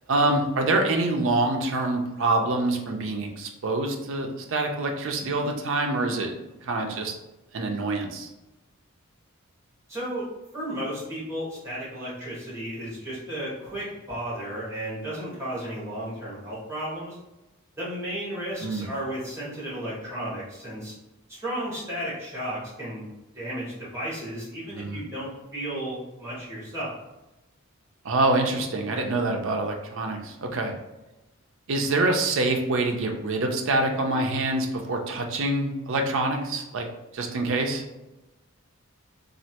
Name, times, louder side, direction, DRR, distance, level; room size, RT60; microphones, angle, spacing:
voice 1, 0.1-6.3 6.6-7.1 7.5-8.3 18.6-18.9 24.7-25.0 28.0-30.7 31.7-36.9 37.1-37.8, right 2 dB, 60° right, 3 dB, 0.5 m, -26 dB
voice 2, 9.9-10.3 10.5-17.2 17.8-20.9 21.3-23.0 23.3-26.9, right 1 dB, 15° right, -8 dB, 1.5 m, -34 dB
3.1 x 2.5 x 2.8 m, 1.0 s
head